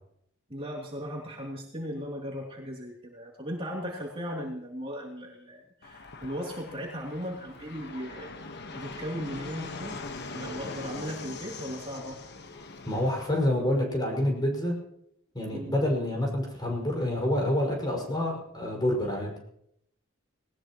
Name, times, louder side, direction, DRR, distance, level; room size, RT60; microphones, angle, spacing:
voice 1, 0.5-8.3 8.6-10.0 10.3-12.2 15.5-15.7, equal, 25° right, -3 dB, 3.1 m, -37 dB
Fixed-wing aircraft airplane, 5.8-13.4, left 3 dB, 50° left, 1.4 m, -42 dB
voice 2, 12.9-14.8 15.3-19.3, left 1 dB, 20° left, 0 dB, 5.8 m, -27 dB
20.0 x 19.5 x 3.1 m, 0.74 s
head